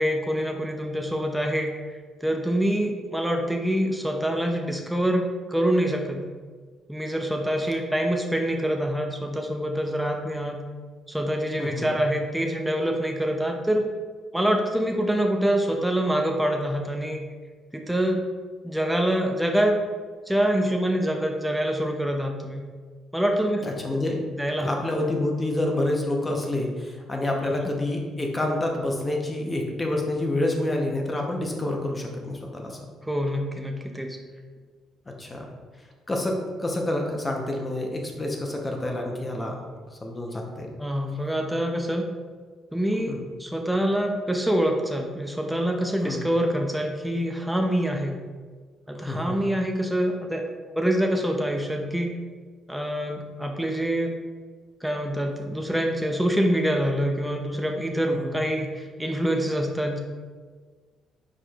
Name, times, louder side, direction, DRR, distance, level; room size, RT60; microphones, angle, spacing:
voice 1, 0.0-1.7 2.2-6.2 6.9-10.6 11.1-13.9 14.3-17.2 17.7-18.2 18.6-19.8 20.3-22.6 23.1-23.6 24.4-24.7 27.4-27.5 33.0-34.2 40.8-42.1 42.7-48.2 48.9-52.1 52.7-54.1 54.8-60.0, equal, 5° right, 2 dB, 0.5 m, -25 dB
voice 2, 11.6-11.9 23.6-24.3 24.6-32.8 35.2-35.5 36.1-39.6 40.0-40.7 43.1-43.2 46.0-46.2 49.0-49.4 58.0-58.4, left 1 dB, 25° left, 1 dB, 0.8 m, -28 dB
4.9 x 4.2 x 2.4 m, 1.5 s
supercardioid pair, 80°, 0 cm